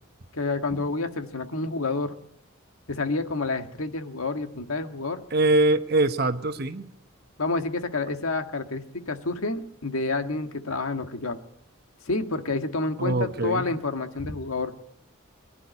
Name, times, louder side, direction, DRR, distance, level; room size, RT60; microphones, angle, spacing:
voice 1, 0.3-2.1 2.9-5.2 7.4-11.4 12.1-14.9, left 3 dB, 85° left, 7 dB, 1.6 m, -29 dB
voice 2, 5.3-6.9 13.0-13.7, right 2 dB, 50° right, 9 dB, 1.2 m, -23 dB
23.0 x 11.5 x 10.0 m, 0.78 s
head